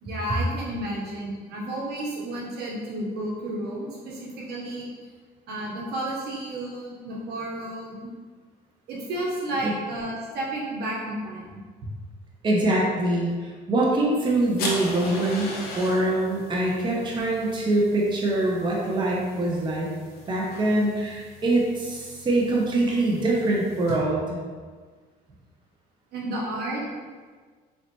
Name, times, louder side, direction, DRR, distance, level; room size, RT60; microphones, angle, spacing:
voice 1, 0.0-4.9 5.5-8.1 8.9-11.4 26.1-26.8, right 1 dB, 75° right, -4 dB, 1.1 m, -32 dB
voice 2, 12.4-19.9 20.3-24.4, right 2 dB, 30° right, -3 dB, 0.7 m, -24 dB
sound 1, 14.2-23.9, left 2 dB, 70° left, 0.8 m, -39 dB
3.8 x 3.2 x 3.0 m, 1.5 s
cardioid pair, 110°, 17 cm